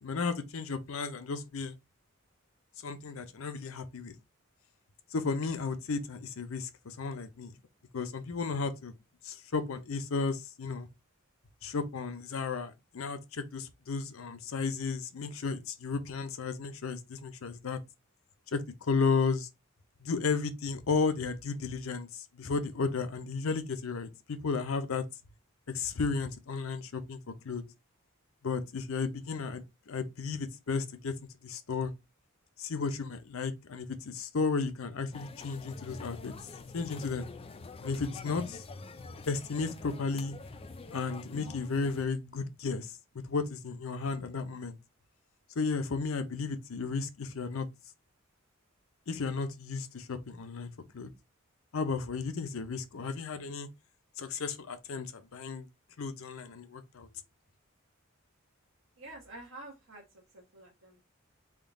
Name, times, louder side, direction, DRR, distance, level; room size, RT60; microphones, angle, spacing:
voice 1, 0.0-1.7 2.8-4.1 5.1-7.6 7.9-8.9 9.2-10.9 11.6-17.8 18.5-19.5 20.0-25.0 25.7-27.6 28.4-31.1 31.4-31.9 32.6-36.3 36.7-37.3 37.8-38.6 39.3-40.4 40.9-42.9 43.2-44.7 45.6-47.7 49.1-51.1 51.7-53.7 54.2-55.7 56.0-57.1, left 4 dB, 70° left, 0.6 m, -34 dB
sound 1, 35.1-42.1, left 3 dB, 25° left, 0.4 m, -46 dB
voice 2, 59.0-61.0, right 2 dB, 65° right, 0.9 m, -49 dB
3.6 x 2.3 x 3.6 m
head